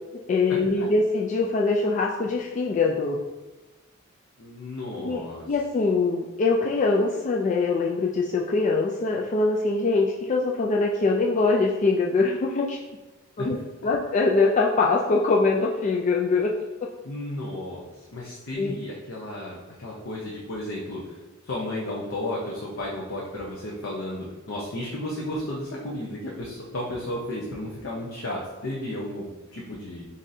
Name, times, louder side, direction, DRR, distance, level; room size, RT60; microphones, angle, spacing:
voice 1, 0.3-3.2 4.9-12.8 13.4-13.6 13.8-16.5 18.6-18.7, left 3 dB, 35° left, -1 dB, 0.3 m, -23 dB
voice 2, 4.4-5.5 13.4-13.5 17.0-21.2 21.4-30.1, left 1 dB, 65° left, -4 dB, 0.7 m, -33 dB
7.2 x 2.6 x 2.6 m, 1.1 s
head